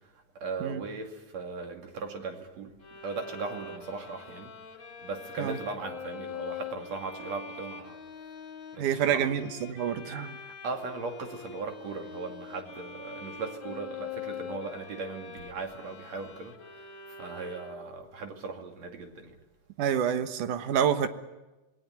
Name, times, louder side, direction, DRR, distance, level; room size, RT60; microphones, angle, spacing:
voice 1, 0.4-2.8 3.0-4.5 5.0-8.0 8.7-9.3 10.4-16.6 17.2-19.4, right 4 dB, 55° right, 3.6 m, -38 dB
Bowed string instrument, 2.8-18.1, left 6 dB, 40° left, 2.6 m, -43 dB
voice 2, 8.8-10.4 19.8-21.1, right 9 dB, 75° right, 2.7 m, -28 dB
27.5 x 19.5 x 9.3 m
omnidirectional pair, 3.7 m